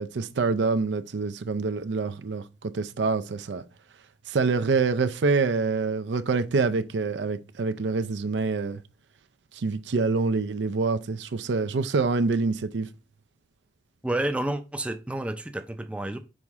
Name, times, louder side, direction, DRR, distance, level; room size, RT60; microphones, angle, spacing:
voice 1, 0.0-3.6 4.3-8.8 9.5-12.9, right 4 dB, 90° right, 0.5 m, -26 dB
voice 2, 14.0-16.2, right 1 dB, 5° right, 0.4 m, -30 dB
6.3 x 4.2 x 3.5 m
head